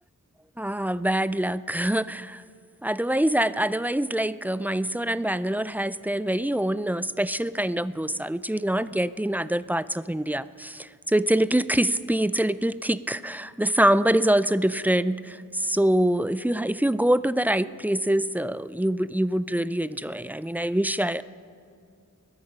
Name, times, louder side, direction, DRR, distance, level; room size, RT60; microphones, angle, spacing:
voice 1, 0.6-2.4 2.8-21.2, right 1 dB, 5° right, 16 dB, 0.3 m, -25 dB
20.0 x 13.0 x 5.3 m, 2.3 s
wide cardioid pair, 65°, 33 cm